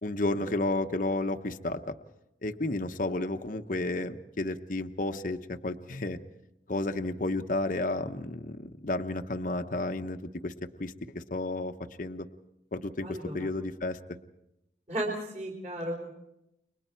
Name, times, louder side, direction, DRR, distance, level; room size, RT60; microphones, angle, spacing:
voice 1, 0.0-1.9 2.4-6.2 6.7-10.5 10.8-11.7 12.0-12.3 12.7-14.0, left 2 dB, 45° left, 7 dB, 0.9 m, -32 dB
voice 2, 13.0-13.3 14.9-16.1, right 1 dB, 40° right, -1 dB, 4.1 m, -34 dB
29.5 x 23.5 x 4.5 m, 0.87 s
head